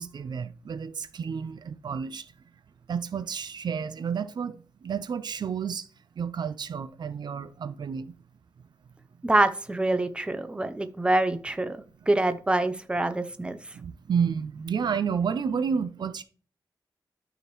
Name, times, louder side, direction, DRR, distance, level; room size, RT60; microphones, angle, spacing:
voice 1, 0.0-2.3 2.9-5.9 6.2-8.1 13.7-16.2, right 6 dB, 65° right, 0.5 m, -30 dB
voice 2, 9.2-11.8 12.1-13.6, right 2 dB, 15° right, 0.6 m, -25 dB
12.0 x 5.0 x 3.1 m
wide cardioid pair, 115°, 8 cm